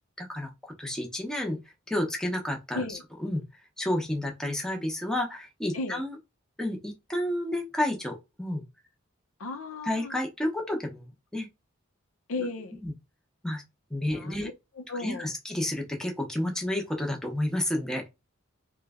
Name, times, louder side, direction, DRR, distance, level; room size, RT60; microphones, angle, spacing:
voice 1, 0.2-1.6 1.9-2.8 3.2-3.4 3.8-6.2 6.6-8.6 9.9-11.5 12.8-12.9 13.4-13.6 13.9-14.5 15.0-18.1, left 1 dB, 5° left, 0.7 m, -30 dB
voice 2, 9.4-10.2 12.3-12.8 14.1-15.3, left 3 dB, 75° left, 0.7 m, -35 dB
3.1 x 2.3 x 3.4 m
head